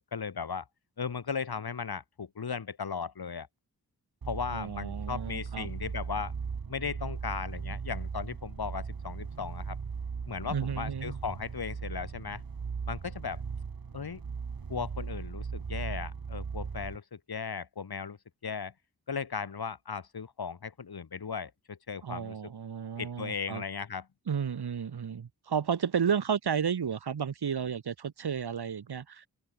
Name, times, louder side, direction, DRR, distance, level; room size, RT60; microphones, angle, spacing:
voice 1, 0.1-0.7 1.0-3.5 4.3-6.3 6.7-9.8 10.3-12.4 12.9-13.4 13.9-14.2 14.7-18.2 18.4-18.7 19.1-22.5 23.0-24.1, left 6 dB, 75° left, 3.6 m, -37 dB
sound 1, 4.2-17.0, right 5 dB, 65° right, 2.9 m, -38 dB
voice 2, 4.5-5.7 10.5-11.2 22.0-23.6 24.3-29.3, right 7 dB, 85° right, 2.0 m, -32 dB
wide cardioid pair, 90°, 38 cm